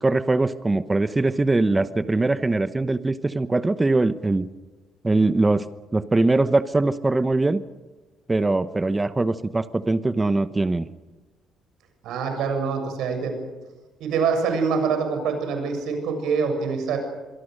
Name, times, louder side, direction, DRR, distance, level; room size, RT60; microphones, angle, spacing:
voice 1, 0.0-4.5 5.0-5.6 5.9-7.6 8.3-10.9, right 2 dB, 15° right, 12 dB, 1.0 m, -22 dB
voice 2, 12.0-13.3 14.0-17.0, right 5 dB, 80° right, 5 dB, 7.3 m, -25 dB
26.0 x 23.0 x 6.6 m, 1.2 s
cardioid pair, 105°, 0 cm